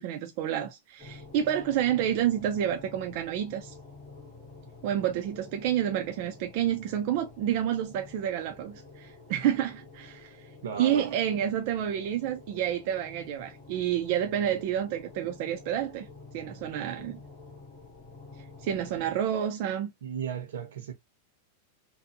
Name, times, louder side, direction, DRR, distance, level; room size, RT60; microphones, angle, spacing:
voice 1, 0.0-3.7 4.8-10.5 10.8-16.1 16.3-17.2 18.6-19.9, right 10 dB, 40° right, 0.4 m, -29 dB
sound 1, 1.0-19.1, left 3 dB, 5° right, 1.0 m, -49 dB
voice 2, 10.6-11.1 20.0-20.9, right 7 dB, 75° right, 0.9 m, -35 dB
2.7 x 2.5 x 2.5 m
supercardioid pair, 175°, 0 cm